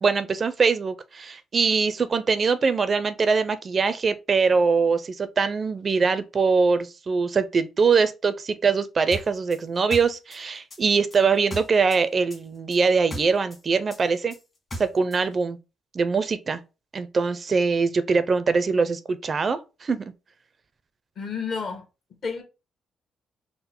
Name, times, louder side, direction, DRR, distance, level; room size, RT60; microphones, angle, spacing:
voice 1, 0.0-14.4 14.8-15.6 15.9-16.6 16.9-20.0, right 5 dB, 40° right, 0.4 m, -23 dB
sound 1, 9.1-12.0 12.3-15.2, right 1 dB, 35° left, 1.3 m, -37 dB
voice 2, 21.2-21.8 22.2-22.4, left 5 dB, 55° left, 1.1 m, -30 dB
3.7 x 2.0 x 4.2 m
cardioid pair, 90°, 0 cm